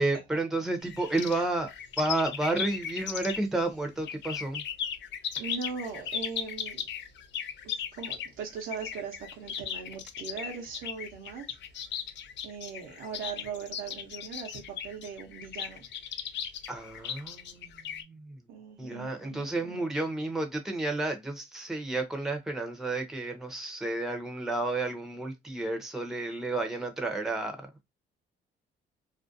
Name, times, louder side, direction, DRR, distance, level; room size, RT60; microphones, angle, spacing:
voice 1, 0.0-1.7 2.0-4.6 16.7-17.7 18.1-18.2 18.8-27.6, right 2 dB, ahead, 0.6 m, -31 dB
sound 1, 0.8-3.6 4.0-18.0, left 8 dB, 65° left, 0.4 m, -37 dB
voice 2, 5.4-6.9 7.6-11.5 12.4-15.8 18.5-20.0, right 6 dB, 85° right, 0.6 m, -40 dB
2.5 x 2.2 x 2.5 m
cardioid pair, 90°, 20 cm